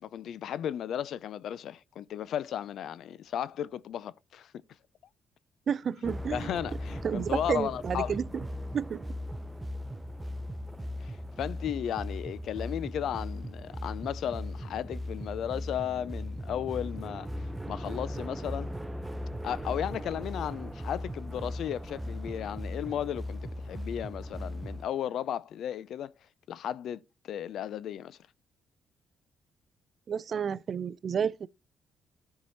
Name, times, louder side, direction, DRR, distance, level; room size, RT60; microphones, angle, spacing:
voice 1, 0.0-4.5 6.0-8.2 11.0-18.7 19.4-26.1 26.5-28.2, left 10 dB, 70° left, 0.5 m, -35 dB
voice 2, 5.7-6.5 7.0-8.4 8.7-9.1 30.1-31.5, right 7 dB, 50° right, 0.4 m, -31 dB
sound 1, 6.0-24.9, equal, 10° right, 0.7 m, -38 dB
12.5 x 4.7 x 4.1 m
cardioid pair, 90°, 0 cm